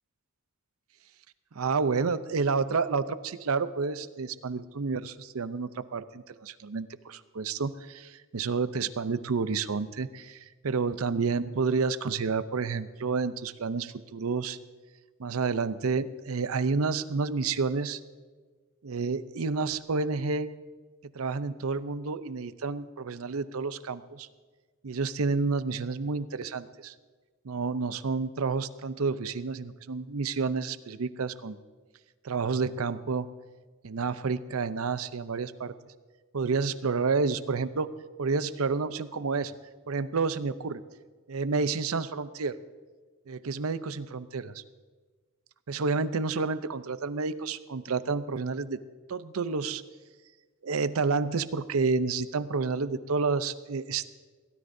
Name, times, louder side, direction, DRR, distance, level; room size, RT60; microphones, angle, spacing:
voice 1, 1.5-14.6 15.2-18.0 18.8-20.5 21.1-24.3 24.8-26.9 27.4-31.6 32.2-33.3 33.8-35.7 36.3-37.9 38.2-39.5 39.9-40.8 41.3-42.6 43.3-44.6 45.7-48.8 49.1-49.8 50.6-54.1, right 4 dB, 90° right, 13 dB, 0.6 m, -30 dB
22.5 x 16.5 x 2.7 m, 1.4 s
head